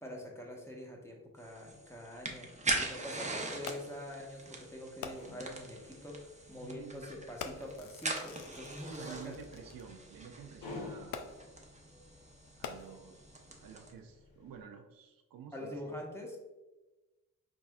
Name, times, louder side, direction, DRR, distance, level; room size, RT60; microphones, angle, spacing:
voice 1, 0.0-2.5 2.7-9.4 15.5-16.4, left 1 dB, 5° left, -1 dB, 1.1 m, -45 dB
sound 1, 1.4-13.9, right 2 dB, 20° right, 0.7 m, -42 dB
Fireworks, 3.7-4.1 5.0-5.5 6.4-6.6 7.4-9.8 11.1-11.6 12.5-13.3 14.0-14.1, left 6 dB, 65° left, 0.5 m, -46 dB
sound 2, 5.0-14.6, left 2 dB, 80° left, 0.9 m, -53 dB
voice 2, 6.6-7.1 8.9-11.2 12.6-16.0, right 8 dB, 65° right, 5 dB, 0.5 m, -51 dB
4.0 x 3.4 x 2.3 m, 1.1 s
supercardioid pair, 40°, 36 cm